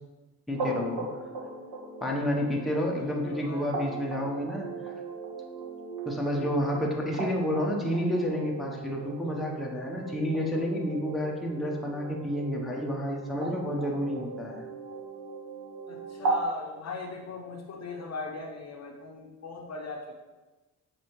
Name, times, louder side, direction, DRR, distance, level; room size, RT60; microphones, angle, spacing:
voice 1, 0.5-1.0 2.0-4.7 6.1-14.7, equal, ahead, -2 dB, 0.8 m, -30 dB
sound 1, 0.6-16.4, right 3 dB, 50° right, 1.3 m, -37 dB
voice 2, 2.9-3.7 15.9-20.1, left 3 dB, 40° left, 0 dB, 0.8 m, -40 dB
6.1 x 2.5 x 3.0 m, 1.2 s
hypercardioid pair, 55°, 40 cm